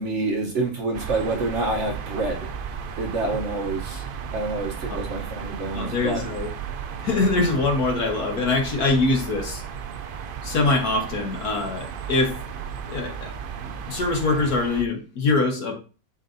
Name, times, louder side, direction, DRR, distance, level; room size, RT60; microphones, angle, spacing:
voice 1, 0.0-2.5 3.0-4.0 4.3-6.2, right 2 dB, 55° right, 1.2 m, -27 dB
sound 1, 0.9-14.8, right 7 dB, 85° right, 0.4 m, -34 dB
voice 2, 5.7-6.5 7.0-9.6 10.4-12.4 12.9-13.3 13.6-15.8, left 3 dB, 80° left, 1.8 m, -23 dB
11.0 x 3.7 x 2.6 m
omnidirectional pair, 1.6 m